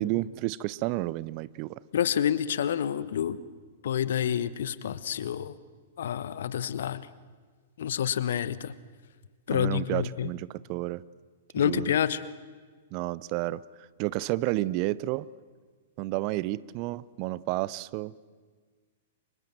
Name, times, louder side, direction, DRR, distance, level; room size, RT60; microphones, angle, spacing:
voice 1, 0.0-1.8 9.5-11.0 11.6-11.9 12.9-13.6 14.0-15.3 16.0-18.2, right 17 dB, 40° right, 0.7 m, -31 dB
voice 2, 1.9-3.4 3.8-5.5 6.0-7.1 7.8-8.7 9.5-10.3 11.5-12.2, left 9 dB, 65° left, 1.1 m, -28 dB
29.5 x 25.0 x 7.6 m
figure-of-eight pair, 105°, 0 cm